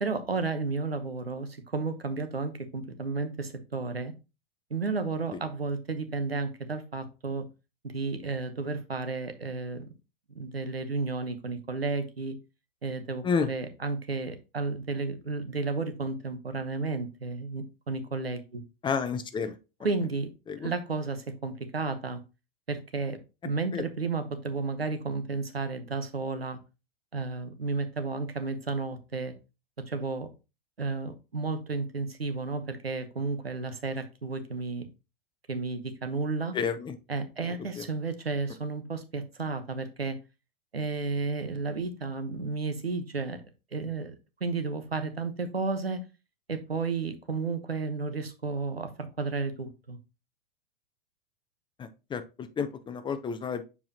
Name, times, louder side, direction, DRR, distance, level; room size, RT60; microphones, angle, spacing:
voice 1, 0.0-4.1 4.7-7.5 7.8-9.9 10.3-12.4 12.8-18.6 19.8-20.3 20.6-22.2 22.7-23.2 23.4-26.6 27.1-29.3 29.9-30.3 30.8-34.9 35.5-36.5 37.1-40.2 40.7-43.4 43.7-44.1 44.4-46.0 46.5-50.0, right 3 dB, 90° right, 9 dB, 1.0 m, -32 dB
voice 2, 18.8-19.6 20.5-20.7 23.7-23.8 36.5-37.0 37.8-37.9 51.8-53.6, left 6 dB, 15° left, 11 dB, 0.6 m, -30 dB
7.0 x 4.7 x 2.8 m, 0.29 s
figure-of-eight pair, 95°, 29 cm